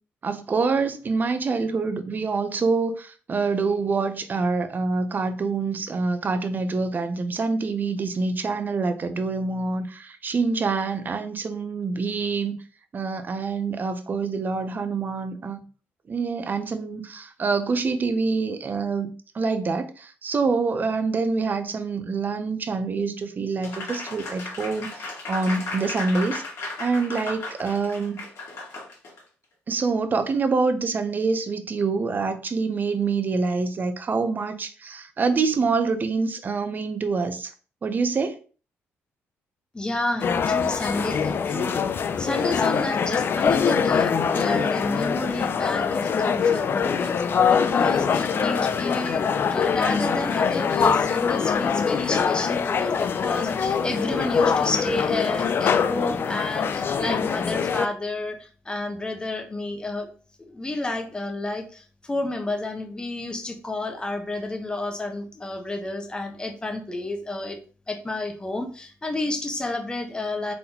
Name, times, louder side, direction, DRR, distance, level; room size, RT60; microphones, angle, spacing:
voice 1, 0.2-12.6 12.9-15.6 16.1-26.4 26.8-28.2 29.7-37.5 37.8-38.4, right 4 dB, 40° right, 9 dB, 0.7 m, -26 dB
Applause, 23.6-29.2, left 2 dB, 65° left, 1.8 m, -35 dB
voice 2, 39.7-41.8 42.2-47.2 47.4-60.1 60.5-67.6 67.9-70.5, left 2 dB, 15° left, 6 dB, 0.9 m, -30 dB
sound 1, 40.2-57.9, left 6 dB, 45° left, 0.4 m, -23 dB
3.9 x 3.7 x 2.9 m, 0.38 s
cardioid pair, 85°, 5 cm